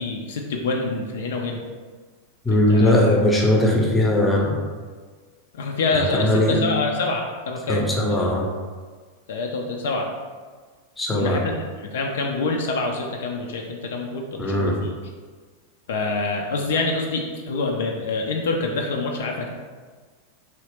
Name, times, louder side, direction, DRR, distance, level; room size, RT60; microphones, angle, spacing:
voice 1, 0.0-1.6 2.5-3.0 5.5-8.3 9.3-10.1 11.1-14.9 15.9-19.5, left 3 dB, 60° left, 1 dB, 0.4 m, -26 dB
voice 2, 2.4-4.6 5.9-6.6 7.7-8.5 11.0-11.4 14.4-14.7, left 1 dB, 10° left, -1 dB, 0.6 m, -19 dB
3.2 x 2.8 x 3.2 m, 1.5 s
figure-of-eight pair, 90°, 0 cm